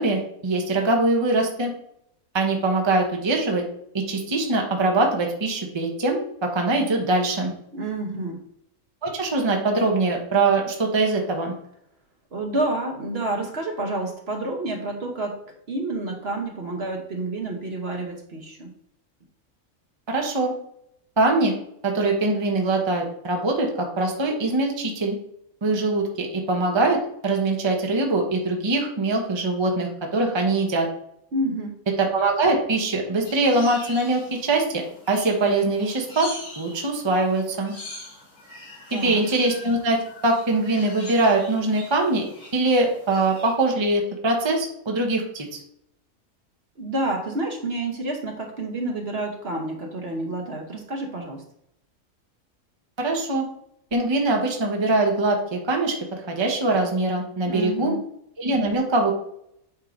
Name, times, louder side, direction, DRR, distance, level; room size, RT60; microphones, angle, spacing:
voice 1, 0.0-1.7 2.3-3.6 3.9-7.5 9.0-11.5 20.1-20.5 21.2-21.5 21.8-25.2 25.6-27.0 27.2-30.9 32.0-34.8 35.1-37.7 38.9-40.0 40.2-42.2 42.5-45.6 53.0-53.4 53.9-56.0 56.3-57.9 58.4-59.1, right 2 dB, 20° right, 1 dB, 0.9 m, -22 dB
voice 2, 7.7-8.4 12.3-15.4 15.7-18.7 31.3-31.8 38.9-39.2 46.8-51.4 57.4-58.0, right 2 dB, 45° right, 2 dB, 1.2 m, -29 dB
sound 1, 33.2-43.5, left 2 dB, 85° left, 3.0 m, -42 dB
8.4 x 2.8 x 5.0 m, 0.73 s
omnidirectional pair, 1.5 m